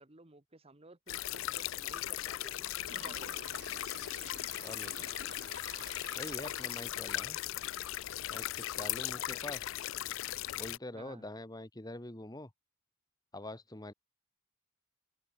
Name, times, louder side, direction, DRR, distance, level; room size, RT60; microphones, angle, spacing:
voice 1, 0.0-3.3 9.3-9.4 10.9-11.3, right 2 dB, 25° right, 1.3 m, -55 dB
sound 1, 1.1-10.8, left 13 dB, 60° left, 0.4 m, -38 dB
Toilet flush, 2.8-7.2, right 5 dB, 50° right, 3.3 m, -52 dB
voice 2, 6.1-7.4 8.3-9.7 10.6-12.5 13.3-13.9, left 1 dB, 15° left, 1.4 m, -44 dB
head